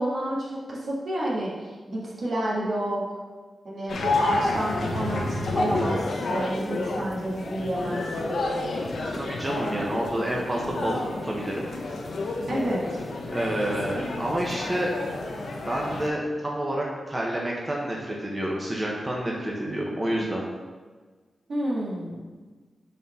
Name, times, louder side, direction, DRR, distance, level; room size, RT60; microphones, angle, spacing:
voice 1, 0.0-3.0 3.6-8.6 12.5-13.0 21.5-22.2, right 1 dB, 65° right, -5 dB, 1.7 m, -30 dB
sound 1, 3.9-16.1, left 2 dB, 75° left, 0.8 m, -30 dB
voice 2, 9.1-11.7 13.3-14.9 15.6-20.5, right 1 dB, 25° right, -3 dB, 1.0 m, -29 dB
4.5 x 4.0 x 5.5 m, 1.4 s
cardioid pair, 65°, 0 cm